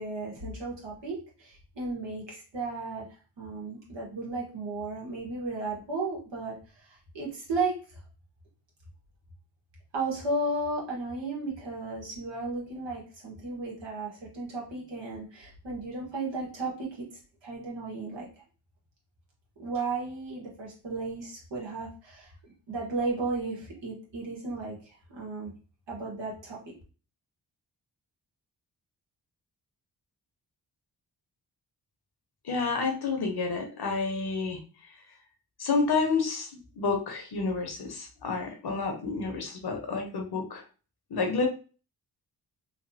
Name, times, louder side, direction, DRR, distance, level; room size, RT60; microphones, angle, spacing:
voice 1, 0.0-3.1 3.4-7.7 9.9-17.0 17.4-18.3 19.6-22.3 22.7-25.5 25.9-26.6, right 3 dB, 85° right, -4 dB, 1.5 m, -34 dB
voice 2, 32.5-34.6 35.6-36.5 36.8-40.6 41.1-41.5, left 4 dB, 65° left, 3 dB, 1.0 m, -29 dB
3.1 x 2.5 x 2.7 m, 0.36 s
cardioid pair, 55°, 42 cm